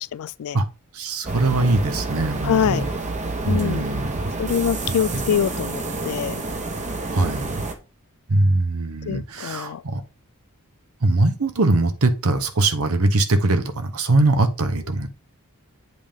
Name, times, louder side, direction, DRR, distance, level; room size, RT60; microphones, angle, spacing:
voice 1, 0.2-0.6 2.4-2.8 3.5-3.8 4.4-6.4 9.1-9.8, left 8 dB, 70° left, 0.3 m, -24 dB
voice 2, 0.9-2.9 3.4-4.1 4.9-5.2 7.1-7.5 8.3-10.0 11.0-15.1, right 2 dB, 70° right, 0.9 m, -21 dB
sound 1, 1.2-7.7, right 3 dB, 35° right, 1.1 m, -29 dB
8.1 x 3.6 x 5.0 m
head